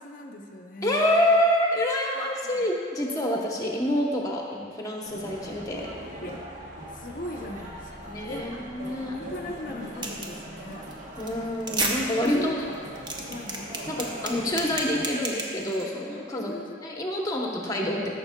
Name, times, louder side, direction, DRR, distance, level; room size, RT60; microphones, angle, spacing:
voice 1, 0.0-1.3 2.4-2.6 3.5-3.6 6.2-6.4 6.9-8.5 9.1-10.9 12.2-12.6 13.3-13.8 16.1-17.0, left 1 dB, 45° left, 2 dB, 0.6 m, -39 dB
voice 2, 0.8-5.9 8.0-9.1 11.2-12.6 13.9-16.5 16.8-18.1, left 1 dB, 20° left, -1 dB, 0.8 m, -27 dB
sound 1, 5.1-15.1, right 1 dB, 40° right, 0.9 m, -41 dB
sound 2, 10.0-10.4 10.7-10.9 11.2-11.3 11.6-11.9 12.2-12.3 12.7-15.8, right 2 dB, 20° right, 0.7 m, -31 dB
13.5 x 6.5 x 2.2 m, 2.2 s
head